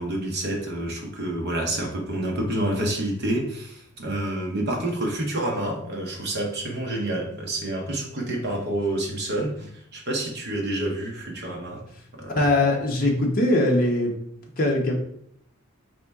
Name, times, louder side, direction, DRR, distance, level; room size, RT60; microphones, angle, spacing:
voice 1, 0.0-11.8 12.1-12.5, right 1 dB, 50° right, 0 dB, 0.9 m, -28 dB
voice 2, 12.3-14.1 14.6-14.9, left 1 dB, 40° left, -1 dB, 0.8 m, -21 dB
4.2 x 2.9 x 3.5 m, 0.69 s
head